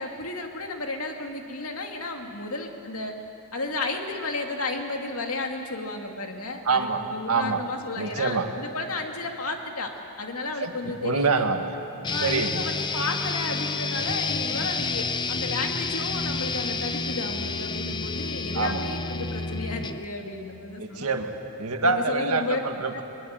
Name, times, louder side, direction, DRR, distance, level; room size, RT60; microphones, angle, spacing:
voice 1, 0.0-3.2 3.5-11.5 12.1-21.1 21.8-22.6 22.9-23.0, left 3 dB, 75° left, 3 dB, 2.3 m, -33 dB
voice 2, 6.6-7.6 8.0-8.5 10.6-11.6 12.2-12.6 18.5-18.8 20.8-23.0, right 4 dB, 80° right, 5 dB, 1.7 m, -26 dB
sound 1, 12.0-20.1, left 4 dB, 20° left, 0.7 m, -29 dB
22.5 x 21.5 x 8.9 m, 3.0 s
head